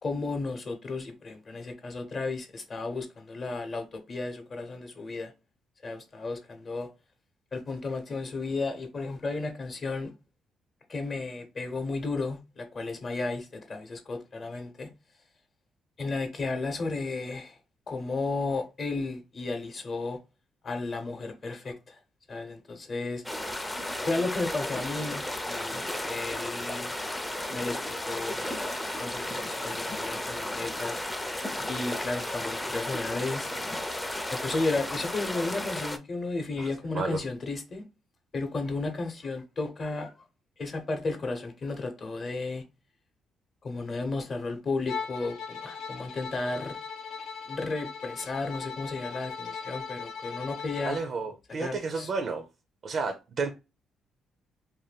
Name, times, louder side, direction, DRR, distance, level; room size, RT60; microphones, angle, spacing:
voice 1, 0.0-5.3 5.8-6.9 7.5-10.1 10.9-14.9 16.0-17.6 17.9-20.2 20.6-22.0 22.3-23.2 24.0-26.9 27.5-28.4 29.0-31.0 31.7-33.5 34.3-37.8 38.3-40.1 40.6-42.6 43.6-46.8 47.5-51.0 51.6-52.1, left 3 dB, 45° left, 0.8 m, -33 dB
sound 1, 23.2-36.0, left 1 dB, 10° left, 0.4 m, -34 dB
voice 2, 36.6-37.2 50.8-52.5 52.8-53.5, right 4 dB, 55° right, 0.4 m, -32 dB
Bowed string instrument, 44.9-51.1, left 5 dB, 85° left, 0.4 m, -39 dB
2.5 x 2.2 x 3.3 m
cardioid pair, 90°, 0 cm